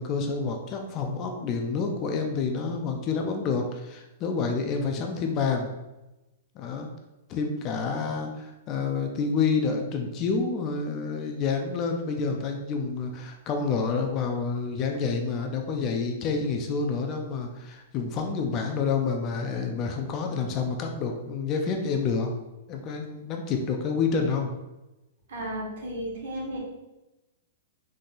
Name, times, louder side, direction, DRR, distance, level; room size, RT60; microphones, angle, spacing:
voice 1, 0.0-5.7 6.6-6.9 7.3-22.3 22.7-24.5, left 5 dB, 25° left, 4 dB, 0.4 m, -28 dB
voice 2, 25.3-26.6, right 1 dB, 65° right, -2 dB, 1.5 m, -34 dB
3.9 x 2.8 x 3.8 m, 1.0 s
supercardioid pair, 170°, 0 cm